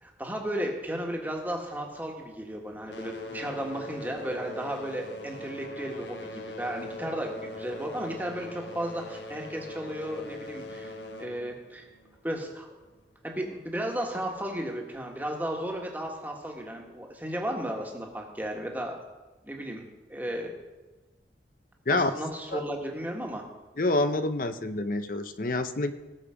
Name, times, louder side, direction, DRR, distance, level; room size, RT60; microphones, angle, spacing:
voice 1, 0.0-10.9 11.2-11.9 12.2-12.7 13.2-18.9 19.4-20.5 21.9-23.5, right 1 dB, 10° right, 0 dB, 1.6 m, -34 dB
sound 1, 1.1-2.4 2.7-13.0 13.9-14.0 14.7-14.8 15.4-15.5, left 1 dB, 80° left, 1.1 m, -41 dB
voice 2, 23.8-25.9, left 2 dB, 50° left, 10 dB, 0.7 m, -27 dB
18.5 x 7.0 x 5.1 m, 1.1 s
head